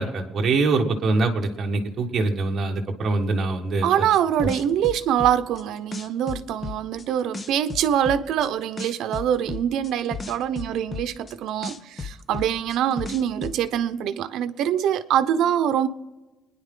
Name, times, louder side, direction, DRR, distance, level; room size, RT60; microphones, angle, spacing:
voice 1, 0.0-3.9, right 3 dB, 35° right, 1.5 m, -24 dB
voice 2, 3.8-15.9, right 10 dB, 75° right, 0.7 m, -24 dB
sound 1, 4.1-5.6 5.9-7.0 7.3-8.5 8.8-11.3 11.6-13.6, left 4 dB, 25° left, 0.8 m, -34 dB
27.5 x 10.5 x 3.8 m
cardioid pair, 165°, 0 cm